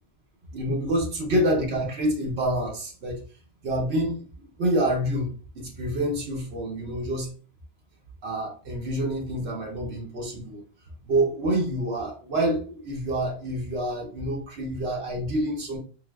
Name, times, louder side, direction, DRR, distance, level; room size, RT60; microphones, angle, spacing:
voice 1, 0.5-3.2 3.6-7.3 8.2-10.6 11.1-15.8, right 1 dB, 90° right, -1 dB, 1.1 m, -27 dB
3.4 x 2.8 x 2.2 m, 0.37 s
omnidirectional pair, 1.1 m